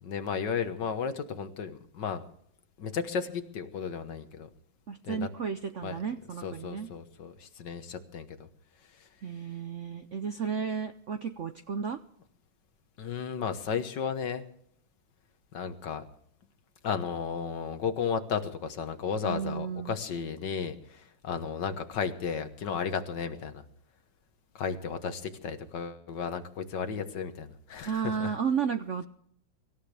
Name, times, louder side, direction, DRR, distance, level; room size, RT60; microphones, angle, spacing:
voice 1, 0.0-2.2 2.8-4.5 5.0-5.3 5.8-6.0 6.4-8.5 8.9-9.1 13.0-14.4 15.5-16.0 16.8-23.6 24.6-28.3, left 6 dB, 60° left, 9 dB, 1.8 m, -34 dB
voice 2, 4.9-6.9 9.2-12.0 19.2-19.9 27.8-29.1, right 6 dB, 85° right, 8 dB, 0.6 m, -33 dB
24.5 x 13.5 x 3.4 m, 0.67 s
omnidirectional pair, 2.3 m